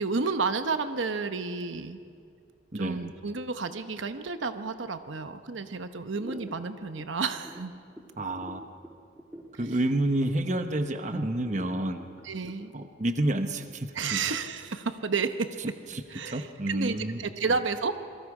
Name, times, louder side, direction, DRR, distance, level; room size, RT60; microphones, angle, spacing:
voice 1, 0.0-2.0 2.7-7.7 12.2-12.7 13.9-15.5 16.1-18.0, right 4 dB, 80° right, 9 dB, 0.9 m, -31 dB
voice 2, 2.7-3.1 8.2-8.6 9.6-12.1 12.7-14.2 15.9-17.2, right 1 dB, 40° right, 7 dB, 1.0 m, -29 dB
sound 1, 6.1-13.9, equal, 10° right, 1.7 m, -47 dB
27.5 x 22.5 x 4.9 m, 2.3 s
head